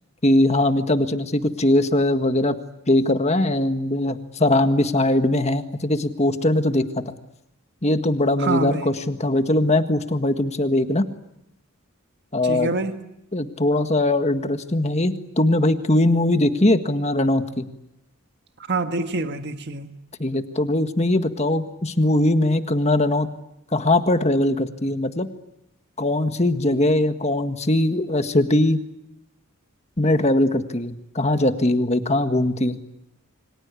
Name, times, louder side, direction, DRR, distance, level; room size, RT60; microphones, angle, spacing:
voice 1, 0.2-2.6 2.9-7.0 7.8-11.1 12.3-12.7 13.3-17.7 20.2-23.3 23.7-25.3 26.0-28.8 30.0-32.8, left 1 dB, 30° left, 1.7 m, -21 dB
voice 2, 8.4-8.9 12.4-13.0 18.7-19.9, right 3 dB, 50° right, 1.7 m, -26 dB
28.5 x 25.0 x 8.4 m
head